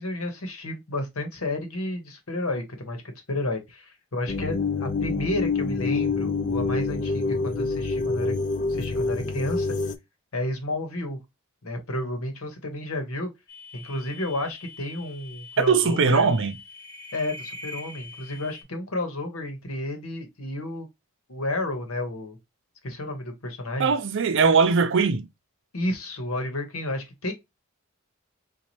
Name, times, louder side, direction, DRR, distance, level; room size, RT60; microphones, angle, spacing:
voice 1, 0.0-8.3 8.7-9.7 10.3-11.2 11.6-13.3 13.7-16.3 17.1-20.9 21.3-22.4 22.8-23.9 25.7-27.3, left 1 dB, 85° left, 1.2 m, -31 dB
sound 1, 4.3-9.9, left 4 dB, 35° left, 0.4 m, -27 dB
sound 2, 13.5-18.6, left 3 dB, 15° left, 1.0 m, -43 dB
voice 2, 15.7-16.5 23.8-25.3, right 5 dB, 65° right, 0.6 m, -20 dB
4.0 x 2.5 x 3.0 m
head